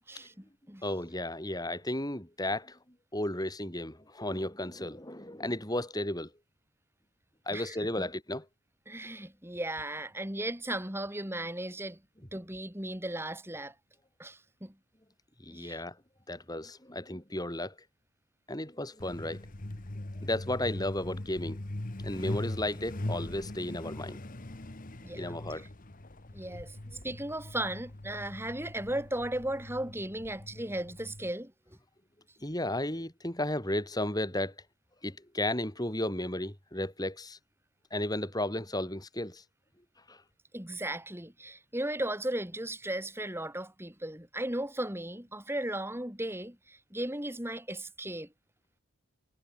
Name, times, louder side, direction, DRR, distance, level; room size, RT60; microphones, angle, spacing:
voice 1, 0.1-0.8 7.5-8.1 8.9-12.0 12.3-13.7 14.2-14.7 15.5-15.8 25.0-25.4 26.3-26.8 27.0-31.8 40.5-48.3, right 1 dB, 10° right, 4.3 m, -36 dB
voice 2, 0.8-2.8 3.1-6.3 7.5-8.4 15.4-15.9 16.3-17.7 18.5-19.5 20.2-21.6 22.0-24.2 25.2-25.7 32.4-34.5 35.0-37.4 37.9-39.4 40.1-40.2, left 1 dB, 15° left, 4.8 m, -34 dB
Truck, 19.0-31.3, left 1 dB, 35° left, 1.2 m, -41 dB
head